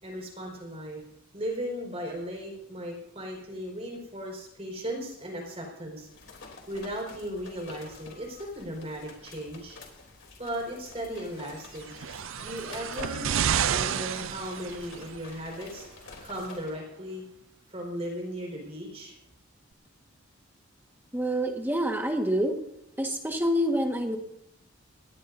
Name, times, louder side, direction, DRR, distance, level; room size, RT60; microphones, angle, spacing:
voice 1, 0.0-1.0 1.3-6.1 6.7-9.8 10.4-11.9 12.4-13.3 13.7-15.9 16.2-17.2 17.7-19.1, equal, 30° right, 0 dB, 4.9 m, -36 dB
sound 1, 6.0-16.8, left 3 dB, 60° left, 3.4 m, -48 dB
sound 2, 11.8-15.2 16.1-16.2, right 8 dB, 65° right, 0.4 m, -30 dB
voice 2, 21.1-22.6 23.0-24.2, equal, 10° right, 2 dB, 1.6 m, -27 dB
20.5 x 18.0 x 2.7 m, 0.82 s
head